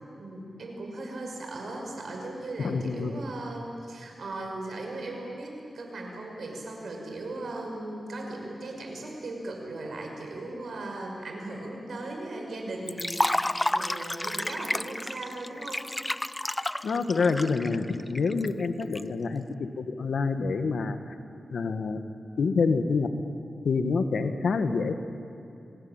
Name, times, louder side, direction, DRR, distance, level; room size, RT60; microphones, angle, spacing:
voice 1, 0.0-15.9, right 2 dB, 75° right, 1 dB, 6.0 m, -38 dB
voice 2, 2.6-3.1 16.8-21.0 21.5-22.0 22.4-23.1 23.6-24.9, left 4 dB, 80° left, 8 dB, 1.6 m, -27 dB
Liquid, 12.9-19.0, left 1 dB, 15° left, 0.5 m, -30 dB
26.0 x 19.5 x 9.0 m, 2.7 s
wide cardioid pair, 80°, 0 cm